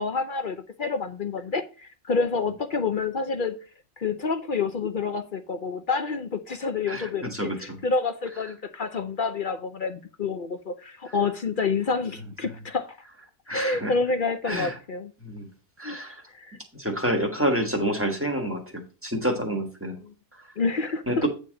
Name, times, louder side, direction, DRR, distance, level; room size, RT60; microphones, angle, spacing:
voice 1, 0.0-3.6 4.0-13.0 13.5-15.1 15.8-16.0 16.3-16.6 20.0-20.1 20.6-21.3, left 4 dB, 55° left, 0.6 m, -28 dB
voice 2, 6.9-7.8 13.5-13.9 14.5-14.7 15.2-15.5 15.8-16.2 16.8-20.0 21.1-21.3, equal, 10° right, 1.4 m, -28 dB
8.7 x 3.5 x 6.3 m
omnidirectional pair, 1.6 m